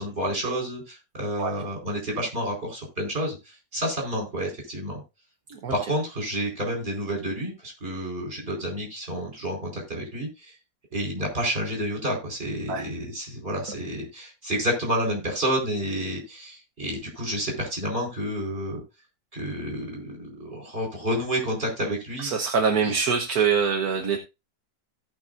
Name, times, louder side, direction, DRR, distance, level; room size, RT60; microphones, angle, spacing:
voice 1, 0.0-5.0 5.7-10.5 10.9-18.8 19.3-22.3 22.8-22.9, equal, 35° right, -1 dB, 4.7 m, -30 dB
voice 2, 22.2-24.2, right 6 dB, 65° right, 4 dB, 1.6 m, -24 dB
17.0 x 6.0 x 2.6 m, 0.26 s
omnidirectional pair, 1.7 m